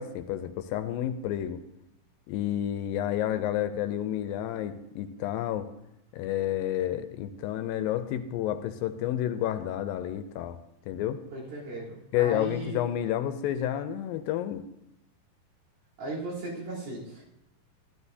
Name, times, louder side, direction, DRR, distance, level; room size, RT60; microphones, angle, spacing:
voice 1, 0.0-1.6 2.3-5.7 6.1-10.6 10.9-11.2 12.1-14.6, left 11 dB, 85° left, 10 dB, 2.3 m, -30 dB
voice 2, 11.3-12.8 16.0-17.2, right 2 dB, 90° right, -7 dB, 5.3 m, -37 dB
12.5 x 12.0 x 2.7 m, 0.86 s
omnidirectional pair, 4.1 m